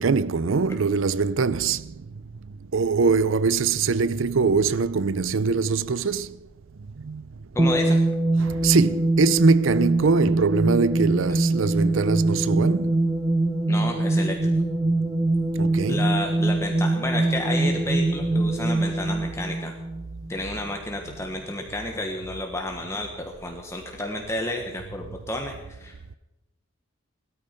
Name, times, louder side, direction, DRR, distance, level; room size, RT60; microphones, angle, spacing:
voice 1, 0.0-1.9 2.7-6.3 7.0-7.2 8.4-13.0 15.6-16.1, right 4 dB, 70° right, 0.5 m, -23 dB
voice 2, 7.5-8.0 13.7-14.5 15.9-19.7 20.3-26.2, left 1 dB, 15° left, 1.2 m, -31 dB
sound 1, 7.6-20.4, right 2 dB, 20° right, 1.5 m, -23 dB
17.5 x 13.0 x 5.2 m
head